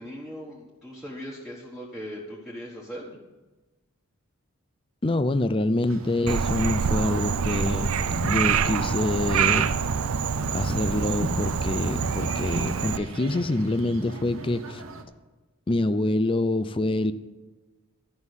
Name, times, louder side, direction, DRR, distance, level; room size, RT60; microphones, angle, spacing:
voice 1, 0.0-3.2, equal, ahead, 1.3 m, -39 dB
voice 2, 5.0-7.9 8.2-9.8 10.5-14.8 15.7-17.1, left 2 dB, 25° left, 0.5 m, -26 dB
sound 1, 5.8-15.0, right 1 dB, 65° right, 1.1 m, -39 dB
Frog, 6.3-13.0, right 6 dB, 85° right, 0.5 m, -26 dB
13.0 x 5.5 x 8.1 m
head